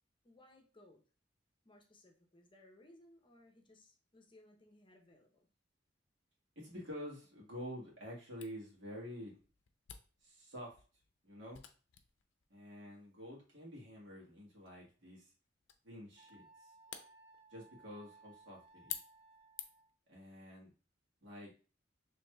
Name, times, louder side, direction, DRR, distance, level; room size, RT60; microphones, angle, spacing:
voice 1, 0.2-1.0 1.6-5.5, left 1 dB, 25° left, 2 dB, 0.7 m, -63 dB
voice 2, 6.5-9.4 10.2-10.8 11.2-11.6 12.5-15.3 15.8-16.7 17.5-19.0 20.1-20.7 21.2-21.5, equal, 85° right, -3 dB, 1.5 m, -48 dB
Camera, 8.4-20.0, left 10 dB, 90° left, 0.5 m, -53 dB
Wind instrument woodwind instrument, 16.2-20.0, right 3 dB, 35° right, 1.4 m, -62 dB
4.6 x 3.1 x 2.2 m, 0.36 s
head